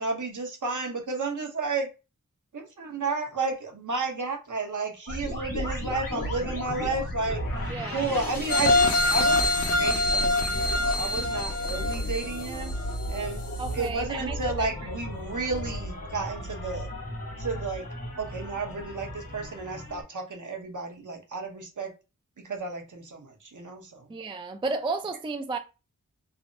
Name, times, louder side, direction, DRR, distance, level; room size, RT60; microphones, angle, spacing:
voice 1, 0.0-1.9 2.5-12.7 13.1-13.4 13.7-16.9 17.4-17.9 18.2-21.9 22.4-24.1, right 3 dB, 60° right, 0.8 m, -32 dB
sound 1, 5.1-20.0, equal, 85° left, 1.4 m, -34 dB
voice 2, 7.7-8.2 13.6-14.7 24.1-25.6, right 3 dB, 15° right, 0.3 m, -33 dB
sound 2, 8.5-13.2 13.7-13.8, left 2 dB, 50° left, 0.6 m, -25 dB
3.3 x 2.0 x 2.5 m
wide cardioid pair, 55°, 34 cm